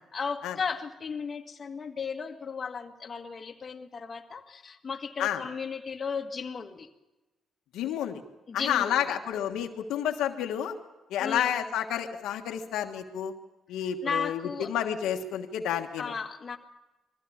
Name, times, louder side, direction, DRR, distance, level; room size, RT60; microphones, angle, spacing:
voice 1, 0.1-6.9 8.5-9.2 11.2-11.6 13.8-14.9 16.0-16.6, left 5 dB, 35° left, 3 dB, 1.8 m, -35 dB
voice 2, 7.7-8.2 8.5-10.7 11.1-13.3 13.7-14.4 14.7-16.0, left 10 dB, 90° left, 4 dB, 1.5 m, -30 dB
21.5 x 15.5 x 8.7 m, 1.0 s
cardioid pair, 90°, 0 cm